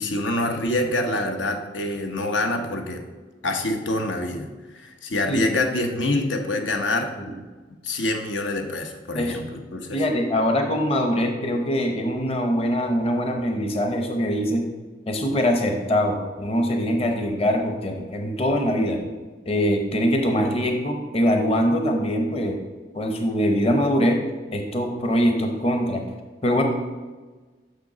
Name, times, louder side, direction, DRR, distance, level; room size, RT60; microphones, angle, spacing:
voice 1, 0.0-3.0 3.4-4.5 4.7-7.1 7.8-10.0, left 2 dB, 85° left, 4 dB, 0.9 m, -26 dB
voice 2, 9.9-14.7 15.1-19.1 19.5-22.6 22.9-24.2 24.5-26.0 26.4-26.6, equal, 30° left, 4 dB, 0.8 m, -23 dB
6.6 x 6.3 x 4.9 m, 1.3 s
head